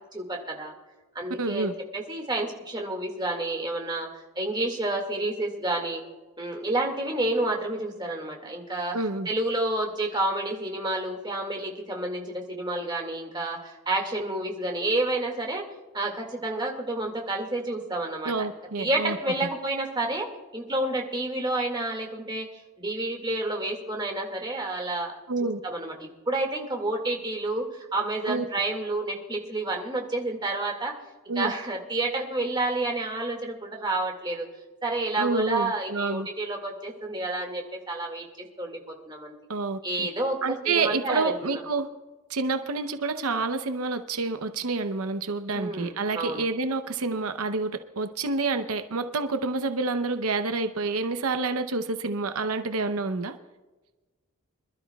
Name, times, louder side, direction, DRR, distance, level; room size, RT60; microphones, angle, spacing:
voice 1, 0.1-0.7 1.2-6.0 6.4-9.0 9.3-15.6 15.9-18.5 18.8-20.3 20.5-22.5 22.8-25.2 25.4-30.9 31.4-34.5 34.8-38.8 39.1-39.3 39.8-41.6 45.5-46.5, right 2 dB, 20° right, 1 dB, 2.0 m, -29 dB
voice 2, 1.4-1.7 8.9-9.3 18.2-19.2 25.3-25.6 28.3-28.4 31.3-31.5 35.2-36.3 39.5-40.1 40.4-41.9 42.3-53.3, right 3 dB, 85° right, 9 dB, 0.8 m, -28 dB
26.0 x 12.5 x 2.3 m, 1.2 s
head